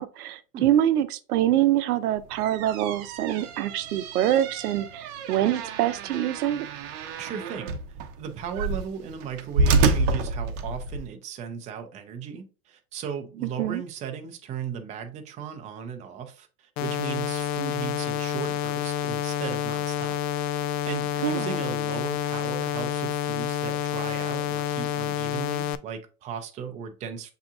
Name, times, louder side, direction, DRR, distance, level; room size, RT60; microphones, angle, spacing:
voice 1, 0.0-6.7 13.6-13.8 21.2-21.6, right 12 dB, 85° right, 0.6 m, -25 dB
sound 1, 2.2-11.1, right 3 dB, 45° right, 0.7 m, -28 dB
voice 2, 7.2-7.7 8.2-20.2 20.9-27.3, right 7 dB, 15° right, 0.4 m, -36 dB
sound 2, 16.8-25.8, left 10 dB, 55° left, 0.5 m, -29 dB
6.9 x 2.8 x 2.5 m
supercardioid pair, 130°, 44 cm